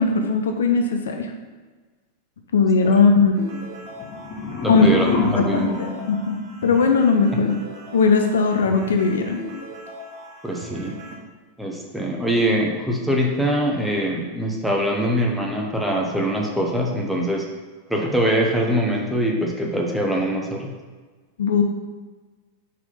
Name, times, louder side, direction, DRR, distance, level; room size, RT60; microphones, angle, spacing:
voice 1, 0.0-1.3 2.5-3.4 4.7-4.9 5.3-7.6 7.9-9.4 21.4-21.6, left 5 dB, 65° left, 5 dB, 0.5 m, -19 dB
sound 1, 3.4-11.2, right 1 dB, 45° right, 1.3 m, -38 dB
sound 2, 3.9-7.0, left 3 dB, 40° left, 1.2 m, -27 dB
voice 2, 4.6-5.1 5.3-5.7 10.4-11.0 11.6-17.4 17.9-20.7, equal, ahead, -2 dB, 1.0 m, -23 dB
4.8 x 4.1 x 5.5 m, 1.4 s
figure-of-eight pair, 90°, 0 cm